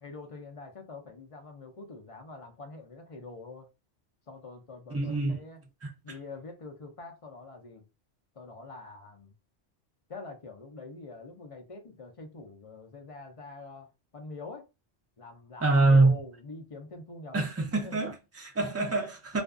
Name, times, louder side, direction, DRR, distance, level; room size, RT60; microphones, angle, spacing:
voice 1, 0.0-3.7 4.3-5.6 6.0-7.8 8.4-9.3 10.1-14.7 15.2-17.4 17.7-18.0, left 3 dB, 45° left, 0.4 m, -45 dB
voice 2, 4.9-5.4 5.8-6.2 15.6-16.2 17.3-19.4, right 2 dB, 20° right, 0.4 m, -25 dB
2.5 x 2.3 x 2.4 m
omnidirectional pair, 1.2 m